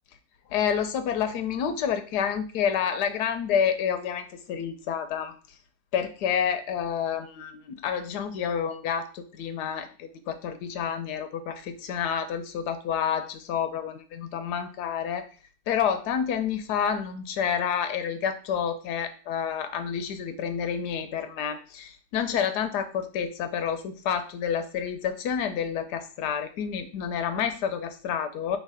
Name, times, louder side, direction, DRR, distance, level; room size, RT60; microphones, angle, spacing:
voice 1, 0.5-5.3 5.9-15.2 15.7-28.6, left 8 dB, 85° left, 8 dB, 1.2 m, -29 dB
3.4 x 3.2 x 4.8 m, 0.38 s
omnidirectional pair, 1.7 m